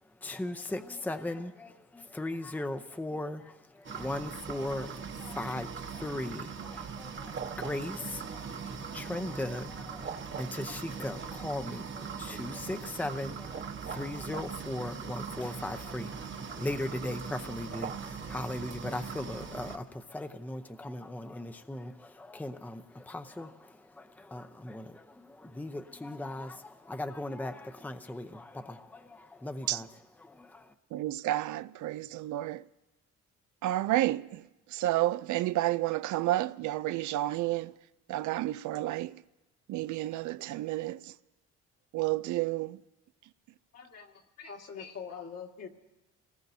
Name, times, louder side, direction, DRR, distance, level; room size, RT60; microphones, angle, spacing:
voice 1, 0.2-29.9 30.2-30.7, left 1 dB, 5° left, 0.7 m, -38 dB
sound 1, 3.8-19.8, right 6 dB, 40° right, 1.1 m, -40 dB
voice 2, 30.9-32.7 33.6-37.8 38.1-39.2 39.7-41.1 41.9-42.8, right 15 dB, 75° right, 0.5 m, -31 dB
voice 3, 43.7-45.7, left 6 dB, 55° left, 1.9 m, -44 dB
26.0 x 19.0 x 2.7 m
cardioid pair, 90°, 30 cm